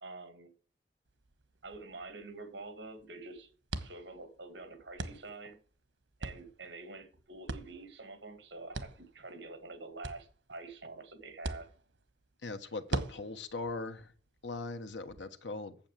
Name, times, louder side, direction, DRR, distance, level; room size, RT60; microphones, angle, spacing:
voice 1, 0.0-0.5 1.6-3.5 3.8-5.6 6.2-11.7, right 3 dB, 65° right, 2.2 m, -47 dB
sound 1, 1.1-15.2, right 2 dB, 85° right, 1.2 m, -45 dB
voice 2, 12.4-14.1 14.4-15.8, left 3 dB, 80° left, 1.2 m, -40 dB
8.6 x 7.5 x 7.5 m
head